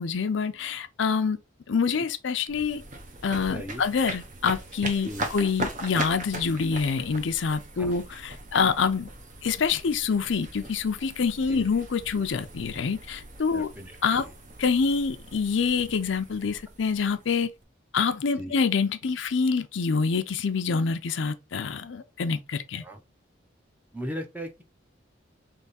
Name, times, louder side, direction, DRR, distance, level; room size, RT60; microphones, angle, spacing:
voice 1, 0.0-1.4 1.7-2.8 3.2-9.1 9.4-13.7 14.0-14.3 14.6-17.5 17.9-22.8, left 5 dB, 70° left, 0.5 m, -26 dB
sound 1, 2.5-17.6, right 2 dB, 40° right, 0.8 m, -40 dB
voice 2, 3.5-3.8 5.0-5.3 7.8-7.9 11.5-11.6 13.5-14.3 18.4-18.6 22.8-23.0 23.9-24.6, equal, 10° right, 0.6 m, -37 dB
3.5 x 3.2 x 4.0 m
head